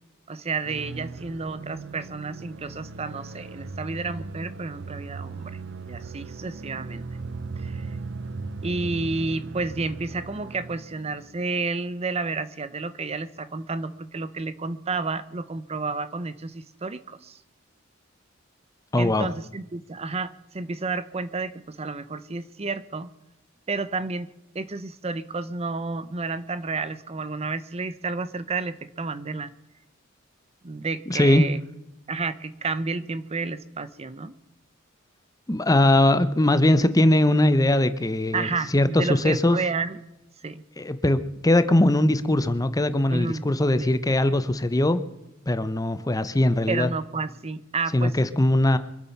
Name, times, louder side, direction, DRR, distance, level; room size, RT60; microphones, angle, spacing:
voice 1, 0.3-5.5 5.8-7.1 7.6-8.0 8.6-17.4 19.0-23.1 23.7-24.3 24.5-29.5 30.6-31.6 32.1-34.3 38.3-40.0 40.4-40.6 43.1-43.5 43.8-43.9 46.7-48.1, right 3 dB, 30° right, 14 dB, 0.7 m, -31 dB
sound 1, 0.6-11.4, right 3 dB, 65° right, 0.8 m, -37 dB
voice 2, 18.9-19.3 31.1-31.5 35.5-39.6 40.8-45.0 45.5-46.9 47.9-48.8, left 1 dB, 20° left, 12 dB, 0.8 m, -21 dB
25.0 x 8.4 x 5.8 m, 0.95 s
head